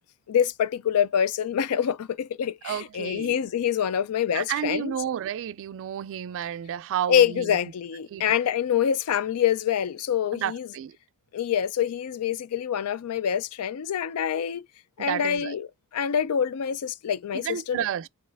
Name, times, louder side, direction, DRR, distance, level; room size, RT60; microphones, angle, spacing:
voice 1, 0.3-5.0 7.1-10.7 11.3-14.6 15.0-15.7 15.9-17.9, left 8 dB, 80° left, 0.4 m, -26 dB
voice 2, 2.6-3.4 4.3-7.6 8.1-8.2 10.3-11.0 15.0-15.6 17.3-18.1, right 10 dB, 60° right, 0.3 m, -31 dB
5.4 x 2.9 x 3.4 m
head